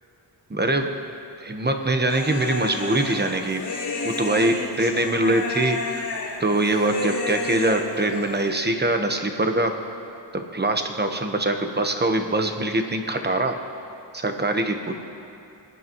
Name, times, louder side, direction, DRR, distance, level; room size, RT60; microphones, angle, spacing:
voice 1, 0.5-1.0 1.4-3.6 4.2-6.1 6.4-9.8 10.3-13.6 14.1-15.0, right 2 dB, 25° right, 5 dB, 1.1 m, -23 dB
Human voice, 2.1-8.5, left 3 dB, 65° left, 2.6 m, -31 dB
27.5 x 9.9 x 3.1 m, 2.7 s
wide cardioid pair, 90°, 44 cm